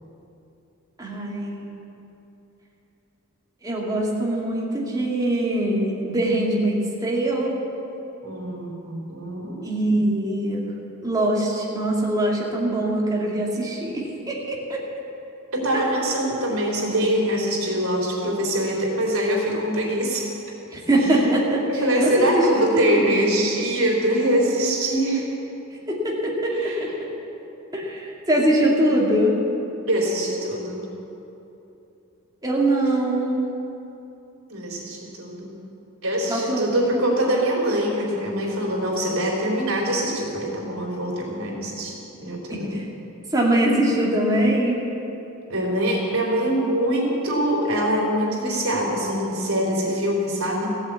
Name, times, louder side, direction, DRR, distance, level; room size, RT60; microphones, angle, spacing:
voice 1, 1.0-1.7 3.6-7.6 9.6-10.6 11.0-14.8 15.7-15.9 20.7-23.2 25.9-26.9 27.7-29.4 32.4-33.5 36.3-37.0 42.5-42.8 43.3-44.8, right 1 dB, 20° right, -3 dB, 2.3 m, -23 dB
voice 2, 8.2-9.6 15.5-20.2 21.1-21.2 21.7-25.3 26.5-26.8 29.9-30.9 34.5-35.5 36.0-42.0 42.2-42.8 45.5-50.8, right 1 dB, 75° right, -2 dB, 3.7 m, -24 dB
16.0 x 8.0 x 8.4 m, 2.9 s
head